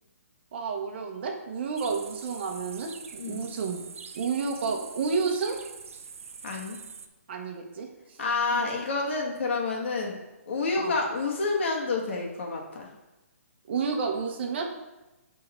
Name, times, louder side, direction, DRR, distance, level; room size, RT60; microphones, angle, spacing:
voice 1, 0.5-3.9 4.1-5.6 7.3-7.9 8.5-8.6 10.7-10.9 13.7-14.6, right 5 dB, 45° right, 3 dB, 1.2 m, -30 dB
sound 1, 1.8-7.1, right 6 dB, 65° right, 0.8 m, -44 dB
voice 2, 6.4-6.8 8.2-10.2 10.5-12.9, left 3 dB, 50° left, 0 dB, 1.9 m, -29 dB
9.7 x 3.9 x 4.4 m, 1.0 s
hypercardioid pair, 155°, 8 cm